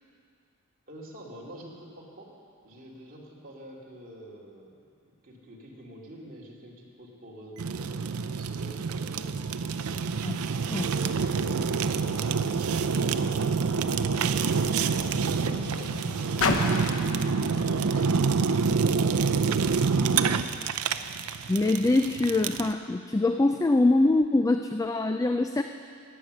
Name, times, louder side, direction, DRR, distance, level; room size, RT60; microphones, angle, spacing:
voice 1, 0.9-2.3 2.6-4.8 5.2-9.3 10.6-16.9 17.9-20.5, right 1 dB, 40° right, -4 dB, 2.5 m, -47 dB
Fire, 7.6-22.7, right 5 dB, 80° right, 0.5 m, -27 dB
Car, 13.1-19.4 20.2-20.3, left 3 dB, 70° left, 1.0 m, -35 dB
voice 2, 21.5-25.6, left 2 dB, 15° left, 7 dB, 0.3 m, -24 dB
16.5 x 9.7 x 6.5 m, 2.3 s
head